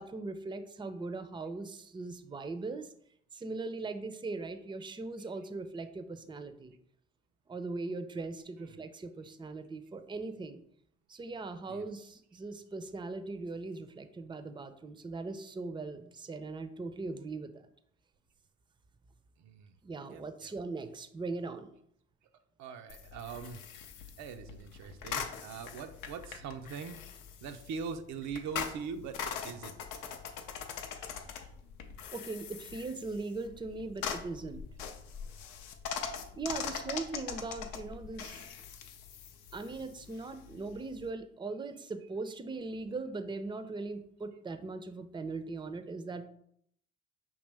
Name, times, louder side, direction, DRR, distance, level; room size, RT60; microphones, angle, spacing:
voice 1, 0.0-2.9 3.3-6.7 7.5-10.6 11.1-17.7 19.8-21.7 32.1-34.6 36.4-38.4 39.5-46.2, right 3 dB, 15° right, 10 dB, 0.5 m, -40 dB
voice 2, 19.4-19.7 20.1-20.5 22.6-23.6 24.2-27.0 27.4-29.2 29.4-29.8 33.7-33.8 36.5-36.6, right 5 dB, 70° right, 7 dB, 0.5 m, -42 dB
sound 1, 22.9-41.1, left 7 dB, 90° left, 0.5 m, -42 dB
5.3 x 2.8 x 3.4 m, 0.68 s
supercardioid pair, 55°, 29 cm